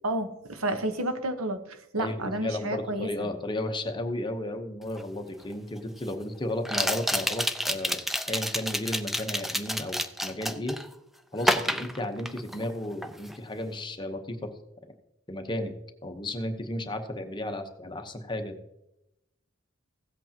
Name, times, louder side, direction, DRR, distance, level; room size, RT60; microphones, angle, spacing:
voice 1, 0.0-3.3, right 1 dB, 90° right, 7 dB, 1.1 m, -31 dB
voice 2, 2.4-10.8 11.3-14.4 15.3-15.7 16.0-18.5, left 1 dB, 20° left, 5 dB, 0.9 m, -33 dB
sound 1, 5.0-5.1 6.6-10.9 11.4-12.7 13.0-13.4, equal, ahead, 0.4 m, -29 dB
16.0 x 8.1 x 2.9 m, 0.88 s
head